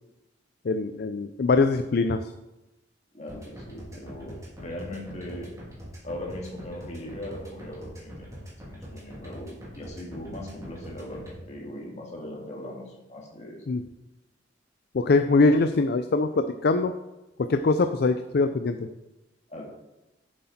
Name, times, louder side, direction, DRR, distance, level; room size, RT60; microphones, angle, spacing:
voice 1, 0.6-2.2 13.7-13.8 14.9-16.9 17.4-18.9, left 3 dB, 55° left, 9 dB, 0.4 m, -23 dB
voice 2, 3.1-5.5 6.0-13.6 19.5-19.6, left 1 dB, 35° left, -2 dB, 2.2 m, -39 dB
sound 1, 3.3-11.3, equal, 15° right, 2.7 m, -42 dB
8.6 x 7.5 x 4.2 m, 0.99 s
head